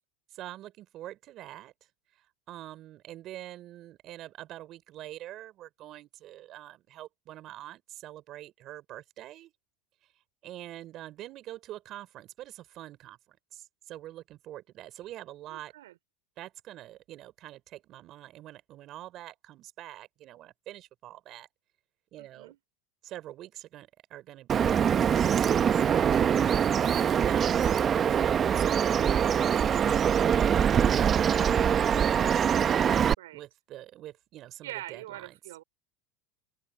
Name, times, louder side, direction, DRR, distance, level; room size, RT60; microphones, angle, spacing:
voice 1, 0.3-1.9 2.5-9.5 10.4-15.7 16.4-21.5 22.1-22.5 23.0-24.8 25.3-26.7 27.2-32.6 33.3-35.4, right 14 dB, 45° right, 4.9 m, -45 dB
voice 2, 15.5-16.0 22.2-22.6 33.2-33.4 34.6-35.6, right 15 dB, 85° right, 3.9 m, -43 dB
Bird vocalization bird call bird song, 24.5-33.1, right 8 dB, 30° right, 0.9 m, -24 dB
open air
supercardioid pair, 115°, 0 cm